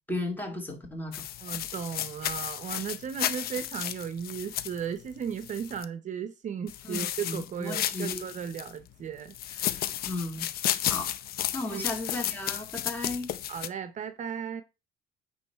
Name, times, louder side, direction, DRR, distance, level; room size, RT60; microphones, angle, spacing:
voice 1, 0.1-1.2 6.8-8.3 10.0-10.5 10.8-11.1 11.5-13.3, left 2 dB, 10° left, 2.4 m, -35 dB
sound 1, 1.1-5.8 6.7-8.7 9.3-13.7, left 12 dB, 65° left, 0.6 m, -33 dB
voice 2, 1.4-9.9 11.7-11.9 13.5-14.6, right 7 dB, 45° right, 0.7 m, -36 dB
8.9 x 3.1 x 5.6 m
cardioid pair, 110°, 17 cm